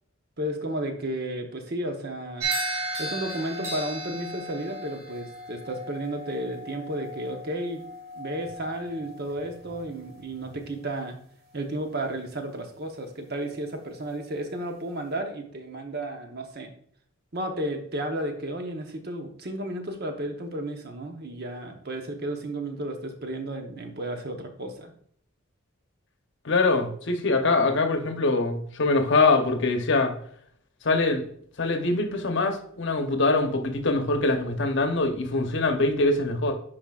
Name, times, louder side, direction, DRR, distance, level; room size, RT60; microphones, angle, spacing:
voice 1, 0.4-2.5 3.0-7.8 8.1-11.2 11.5-16.7 17.3-24.9, right 1 dB, 50° right, 4 dB, 1.0 m, -33 dB
sound 1, 2.4-10.8, right 2 dB, 70° right, 2.1 m, -36 dB
voice 2, 26.4-30.2 30.8-31.2 31.6-36.5, left 3 dB, 55° left, 6 dB, 0.9 m, -23 dB
9.6 x 4.9 x 2.4 m, 0.63 s
head